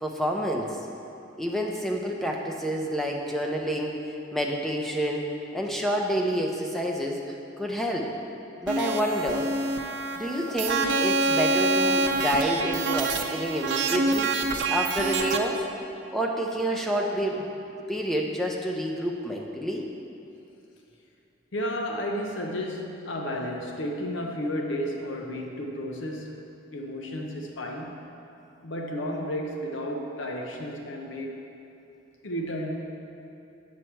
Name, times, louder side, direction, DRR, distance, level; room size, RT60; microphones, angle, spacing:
voice 1, 0.0-0.8 1.4-4.0 4.3-5.3 5.5-7.2 7.6-8.1 8.6-9.6 10.2-14.3 14.7-15.6 16.1-17.5 17.9-19.9, equal, ahead, 0 dB, 0.7 m, -28 dB
sound 1, 8.7-15.4, right 3 dB, 65° right, 0.6 m, -26 dB
voice 2, 21.5-26.4 26.7-28.0 28.6-31.4 32.2-32.7, equal, 80° left, 1 dB, 0.7 m, -32 dB
8.6 x 7.5 x 4.5 m, 2.8 s
head